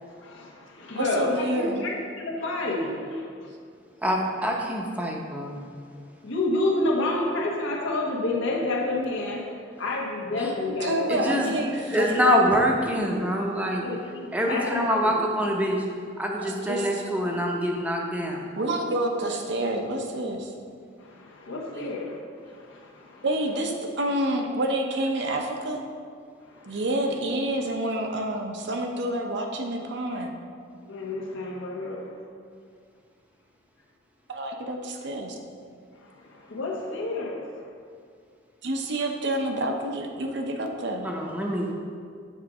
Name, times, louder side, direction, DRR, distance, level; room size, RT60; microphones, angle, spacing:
voice 1, 0.1-1.4 1.7-3.5 6.2-11.3 13.8-15.2 21.0-23.2 26.4-26.8 30.9-32.1 36.0-37.7, left 2 dB, 75° left, -2 dB, 1.2 m, -30 dB
voice 2, 0.9-1.9 10.7-12.6 16.3-17.0 18.4-20.5 23.2-25.8 26.7-30.3 34.3-35.4 38.6-41.1, right 1 dB, 60° right, 2 dB, 0.7 m, -28 dB
voice 3, 4.0-5.6 11.1-13.8 14.3-15.8 16.2-18.4 41.0-41.7, equal, 10° right, 0 dB, 0.7 m, -25 dB
8.1 x 3.8 x 4.9 m, 2.2 s
head